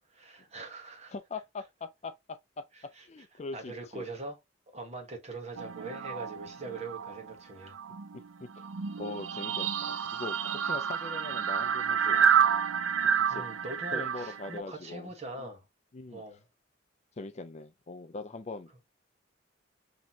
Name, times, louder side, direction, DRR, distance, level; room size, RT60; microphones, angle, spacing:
voice 1, 0.0-1.1 3.0-3.1 3.5-4.4 4.7-7.8 13.3-15.6 16.1-16.4, right 2 dB, 35° right, 1.3 m, -42 dB
voice 2, 1.1-2.6 3.0-4.0 6.6-6.8 8.4-8.7 9.0-12.3 13.3-13.6 13.9-15.1 15.4-15.5 15.9-16.2 17.2-18.7, left 3 dB, 35° left, 0.4 m, -41 dB
sound 1, 5.6-7.3 7.6-14.6, right 7 dB, 85° right, 0.5 m, -29 dB
5.9 x 3.1 x 2.8 m
head